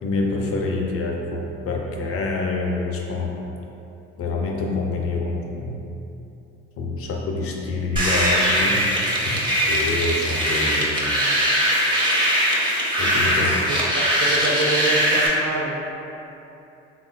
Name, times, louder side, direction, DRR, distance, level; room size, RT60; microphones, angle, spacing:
voice 1, 0.0-3.3 4.2-5.8 6.8-8.8 9.7-11.0 13.0-13.6, left 3 dB, 50° left, 0 dB, 0.5 m, -26 dB
sound 1, 8.0-15.3, equal, 15° right, 0.7 m, -21 dB
voice 2, 13.4-15.8, right 2 dB, 65° right, -2 dB, 0.6 m, -27 dB
3.5 x 2.1 x 2.2 m, 2.9 s
hypercardioid pair, 60°, 29 cm